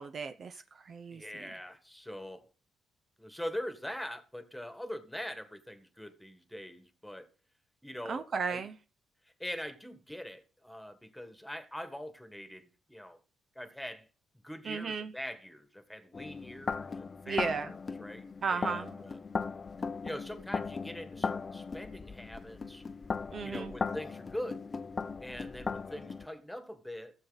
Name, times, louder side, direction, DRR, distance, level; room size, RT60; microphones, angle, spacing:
voice 1, 0.0-1.4 8.1-8.7 14.7-15.1 17.3-17.7 18.4-19.0 23.3-23.7, right 5 dB, 50° right, 0.6 m, -35 dB
voice 2, 1.1-2.5 3.2-7.3 7.8-8.7 9.4-13.2 13.5-14.1 14.4-19.2 20.0-22.8 23.4-24.6 25.2-27.1, equal, 5° left, 1.6 m, -43 dB
sound 1, 16.1-26.3, left 4 dB, 35° left, 0.6 m, -38 dB
14.5 x 7.2 x 4.0 m
cardioid pair, 90°, 0 cm